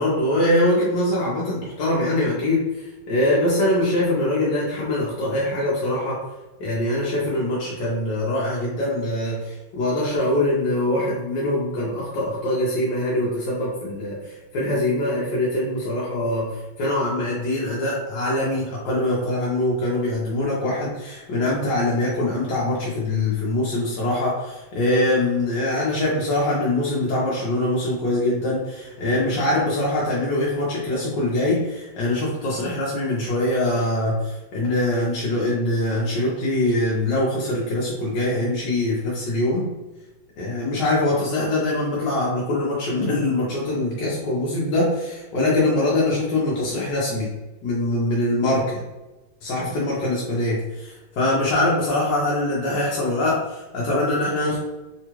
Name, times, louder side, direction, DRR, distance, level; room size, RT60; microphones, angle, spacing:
voice 1, 0.0-6.2 6.6-39.7 40.4-47.3 47.6-48.8 49.4-54.6, left 1 dB, 65° left, -6 dB, 1.2 m, -23 dB
3.6 x 2.3 x 3.0 m, 1.1 s
omnidirectional pair, 2.3 m